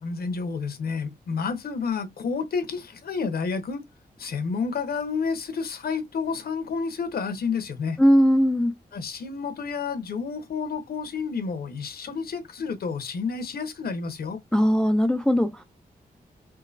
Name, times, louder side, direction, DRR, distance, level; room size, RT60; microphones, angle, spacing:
voice 1, 0.0-3.8 4.2-8.0 8.9-14.4, left 5 dB, 75° left, 1.0 m, -30 dB
voice 2, 8.0-8.7 14.5-15.6, equal, 5° left, 0.4 m, -19 dB
3.8 x 2.3 x 2.5 m
wide cardioid pair, 110°, 16 cm